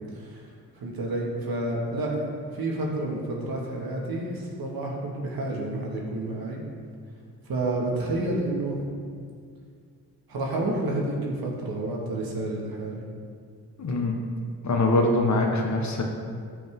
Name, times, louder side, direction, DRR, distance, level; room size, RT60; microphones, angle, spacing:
voice 1, 0.8-6.6 7.5-8.8 10.3-13.0, right 2 dB, 60° right, -2 dB, 2.2 m, -29 dB
voice 2, 13.8-14.3 14.6-16.0, left 2 dB, 45° left, 1 dB, 1.5 m, -23 dB
13.5 x 5.3 x 3.8 m, 2.2 s
supercardioid pair, 70°, 41 cm